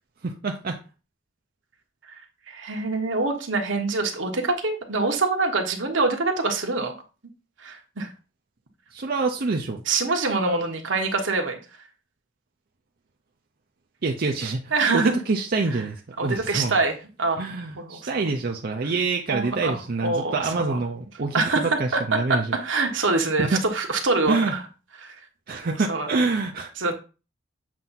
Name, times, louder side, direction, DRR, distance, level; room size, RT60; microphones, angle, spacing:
voice 1, 0.2-0.8 8.9-9.8 14.0-16.8 17.4-22.5 23.4-23.6 24.3-24.5 25.5-26.7, right 3 dB, 50° right, 2 dB, 0.6 m, -26 dB
voice 2, 2.5-6.9 7.6-8.1 9.9-11.6 14.7-15.1 15.7-15.8 16.2-17.4 17.8-18.3 19.3-20.8 21.3-24.6 25.0-25.1 25.7-26.1 26.8-27.0, right 3 dB, 75° right, 3 dB, 1.3 m, -25 dB
7.5 x 2.6 x 5.7 m, 0.33 s
head